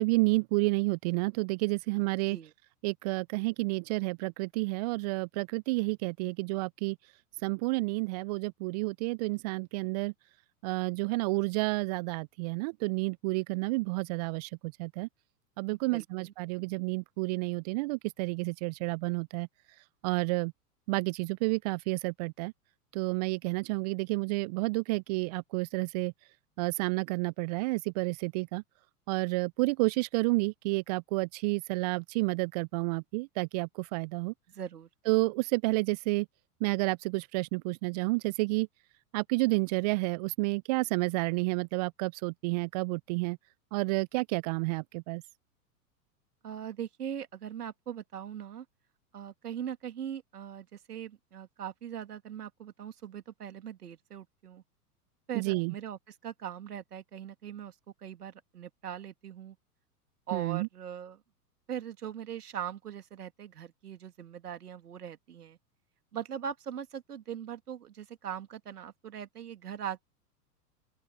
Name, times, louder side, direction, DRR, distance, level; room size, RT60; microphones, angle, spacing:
voice 1, 0.0-2.4 2.8-7.0 7.4-10.1 10.6-15.1 15.6-19.5 20.0-20.5 20.9-22.5 22.9-26.1 26.6-28.6 29.1-34.3 35.1-36.3 36.6-38.7 39.1-43.4 43.7-45.2 55.3-55.7 60.3-60.7, right 25 dB, 30° right, 0.4 m, -30 dB
voice 2, 15.7-16.3 34.5-34.9 46.4-48.6 49.1-54.6 55.3-57.7 58.0-59.6 60.3-61.2 61.7-65.6 66.1-70.0, right 9 dB, 75° right, 2.8 m, -40 dB
open air
figure-of-eight pair, 100°, 47 cm